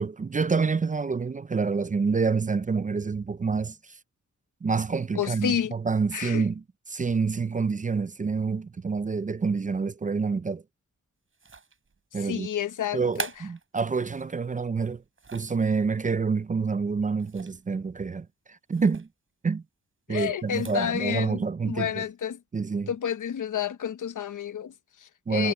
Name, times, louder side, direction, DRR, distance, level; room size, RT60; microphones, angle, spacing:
voice 1, 0.0-4.0 4.6-6.6 6.9-10.6 12.1-12.5 12.9-15.0 15.3-19.1 19.4-19.6 20.1-22.0 22.5-22.9 25.3-25.5, right 5 dB, 25° right, 0.4 m, -27 dB
voice 2, 5.1-5.7 6.1-6.5 12.1-13.3 20.1-22.4 22.9-25.5, left 9 dB, 85° left, 0.9 m, -30 dB
sound 1, 11.3-12.0 12.8-14.4 14.9-15.6 17.2-17.7 18.0-18.1 18.7-19.1 20.4-20.9, right 5 dB, 45° right, 4.2 m, -41 dB
wide cardioid pair, 140°, 30 cm